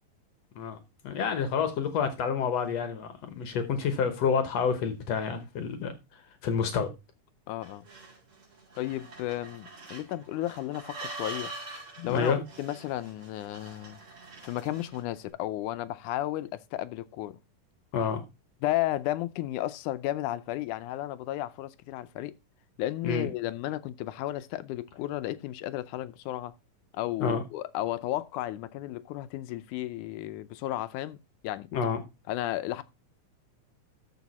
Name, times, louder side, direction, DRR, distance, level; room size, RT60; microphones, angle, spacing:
voice 1, 1.0-5.9 6.4-6.9 12.0-12.4 17.9-18.2 23.0-23.3 27.2-27.4 31.7-32.0, left 6 dB, 65° left, 1.9 m, -28 dB
voice 2, 7.5-7.8 8.8-11.5 12.0-14.0 14.4-17.4 18.6-22.3 22.8-26.5 26.9-31.2 31.4-31.7 32.3-32.8, left 14 dB, 80° left, 2.0 m, -33 dB
sound 1, 7.6-15.1, right 2 dB, 40° right, 4.6 m, -44 dB
13.0 x 5.0 x 4.1 m
omnidirectional pair, 3.7 m